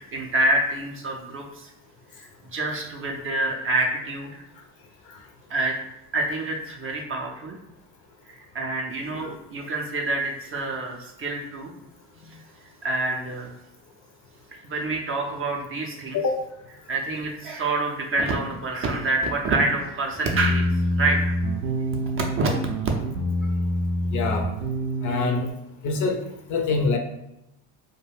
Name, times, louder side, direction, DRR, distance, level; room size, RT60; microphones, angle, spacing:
voice 1, 0.1-1.7 2.2-4.4 5.5-5.7 6.1-7.6 8.3-11.7 12.8-13.5 14.7-16.2 16.9-20.7 21.0-21.4 22.4-22.5, right 2 dB, 30° right, 0 dB, 0.4 m, -27 dB
sound 1, 20.3-25.5, equal, 80° right, 0.6 m, -26 dB
voice 2, 24.1-24.5 25.0-25.5 25.8-26.2 26.5-27.0, left 4 dB, 40° left, 4 dB, 0.4 m, -24 dB
2.3 x 2.1 x 3.2 m, 0.87 s
hypercardioid pair, 70°, 47 cm